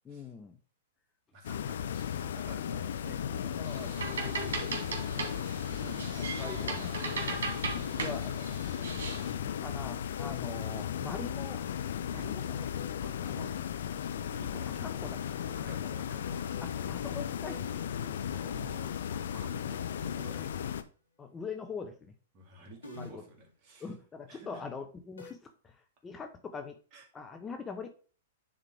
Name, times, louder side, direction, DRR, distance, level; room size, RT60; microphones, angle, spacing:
voice 1, 0.0-0.6 3.5-3.9 4.5-4.9 5.7-8.9 9.4-11.6 12.1-12.7 13.3-13.5 14.8-15.2 15.6-15.7 16.6-17.9 21.2-22.1 23.0-23.2 23.8-26.8 27.1-27.9, left 5 dB, 20° left, 6 dB, 0.7 m, -43 dB
voice 2, 1.3-5.4 12.1-12.4 13.0-13.4 14.3-14.8 15.5-17.3 18.3-20.8 22.3-23.9 24.3-24.6 26.9-27.1, right 3 dB, 40° right, 1 dB, 2.4 m, -52 dB
sound 1, 1.4-20.8, left 9 dB, 65° left, 0.5 m, -36 dB
sound 2, 3.6-9.3, right 4 dB, 70° right, 1.9 m, -38 dB
sound 3, 7.8-8.4 10.2-11.0 12.5-13.8 16.3-18.3 20.0-20.5 22.8-23.4 25.2-25.3, left 4 dB, 85° left, 1.6 m, -45 dB
9.6 x 3.7 x 3.4 m, 0.40 s
hypercardioid pair, 110°, 0 cm